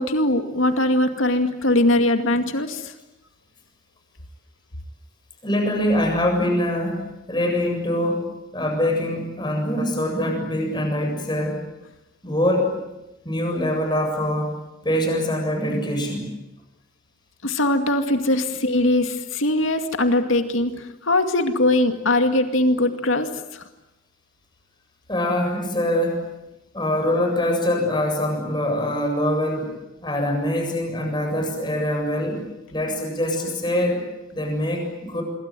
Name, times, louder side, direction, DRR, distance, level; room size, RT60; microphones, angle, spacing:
voice 1, 0.0-2.9 17.4-23.6, left 1 dB, 85° left, 6 dB, 2.3 m, -21 dB
voice 2, 5.4-11.6 12.2-12.8 13.2-14.6 14.8-16.3 25.1-26.3 26.7-29.7 30.0-32.4 32.7-35.2, left 1 dB, 20° left, 3 dB, 7.5 m, -24 dB
26.5 x 23.0 x 9.2 m, 0.96 s
head